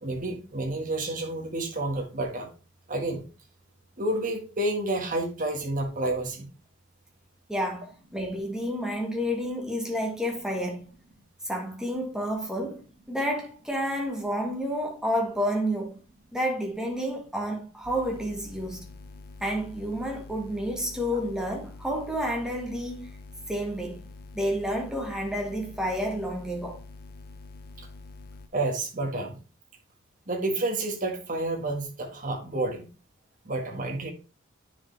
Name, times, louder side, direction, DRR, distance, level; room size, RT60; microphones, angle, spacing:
voice 1, 0.0-2.5 2.9-3.2 4.0-6.5 28.5-29.4 30.3-32.9 33.4-34.1, right 2 dB, 40° right, 1.7 m, -30 dB
voice 2, 7.5-10.8 11.4-12.8 13.1-16.0 16.3-18.8 19.4-23.1 23.5-24.0 24.3-26.8, equal, 5° right, 1.7 m, -30 dB
sound 1, 17.8-28.5, left 3 dB, 50° left, 0.6 m, -46 dB
10.0 x 4.8 x 3.3 m
head